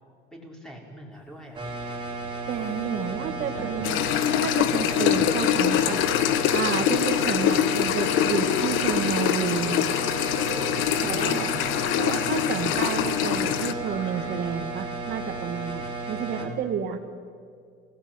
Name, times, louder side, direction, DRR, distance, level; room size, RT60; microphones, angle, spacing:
voice 1, 0.3-1.6 2.9-4.0 10.9-12.0 16.9-17.0, equal, 5° left, -1 dB, 5.6 m, -44 dB
sound 1, 1.5-16.4, right 3 dB, 25° right, 5.0 m, -34 dB
Child speech kid speaking, 2.5-4.5 5.4-6.7 7.8-9.0 9.3-11.1 13.6-14.5, left 2 dB, 60° left, 7.7 m, -42 dB
voice 2, 2.5-4.0 4.4-6.0 6.5-9.8 11.0-11.6 12.0-17.0, right 7 dB, 55° right, 8 dB, 2.4 m, -30 dB
sound 2, 3.8-13.7, left 11 dB, 85° left, 1.3 m, -24 dB
28.0 x 18.5 x 9.1 m, 2.3 s
cardioid pair, 135°, 20 cm